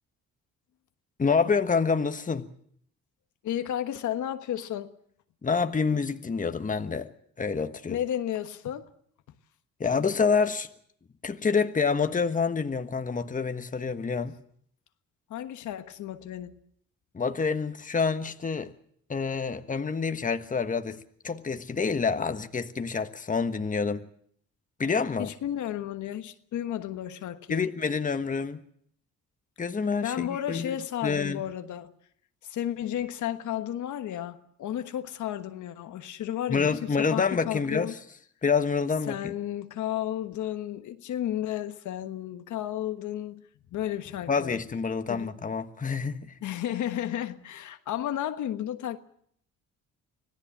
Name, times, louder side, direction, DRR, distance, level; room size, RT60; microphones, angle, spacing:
voice 1, 1.2-2.5 5.4-7.1 7.4-8.0 9.8-10.7 11.2-14.4 17.1-18.7 19.1-24.0 24.8-25.3 27.5-28.6 29.6-30.8 31.0-31.4 36.5-37.9 38.4-39.3 44.3-46.3, left 5 dB, 25° left, 1.3 m, -27 dB
voice 2, 3.4-4.9 7.9-8.9 15.3-16.5 25.2-27.7 30.0-31.9 32.4-38.0 39.1-43.4 43.7-44.6 45.1-45.3 46.4-49.0, left 11 dB, 75° left, 1.4 m, -33 dB
25.5 x 17.0 x 7.3 m
cardioid pair, 90°, 30 cm